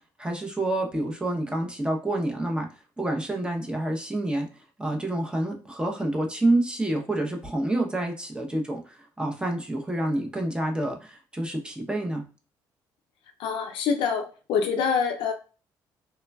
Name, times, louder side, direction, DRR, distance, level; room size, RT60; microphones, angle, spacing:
voice 1, 0.0-2.7 3.0-4.5 4.8-12.2, right 1 dB, 10° right, 2 dB, 0.7 m, -28 dB
voice 2, 13.4-15.3, left 6 dB, 80° left, 4 dB, 0.4 m, -26 dB
3.1 x 2.2 x 2.2 m, 0.34 s
cardioid pair, 80°, 8 cm